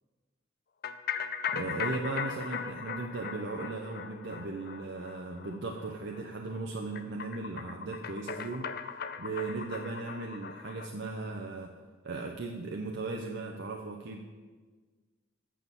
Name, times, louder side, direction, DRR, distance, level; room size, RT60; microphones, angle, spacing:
sound 1, 0.8-10.9, left 7 dB, 50° left, 0.4 m, -39 dB
voice 1, 1.5-8.7 9.2-11.7 12.0-14.2, right 3 dB, 65° right, 1 dB, 0.7 m, -37 dB
7.2 x 6.2 x 7.1 m, 1.4 s
head